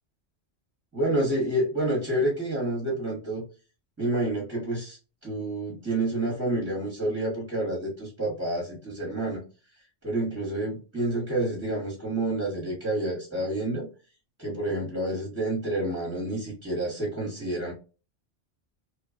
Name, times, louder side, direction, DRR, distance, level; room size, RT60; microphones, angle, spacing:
voice 1, 0.9-3.4 4.0-5.0 5.2-9.4 10.0-13.9 14.4-17.7, right 1 dB, 15° right, -4 dB, 0.9 m, -28 dB
2.9 x 2.2 x 2.4 m, 0.33 s
omnidirectional pair, 1.2 m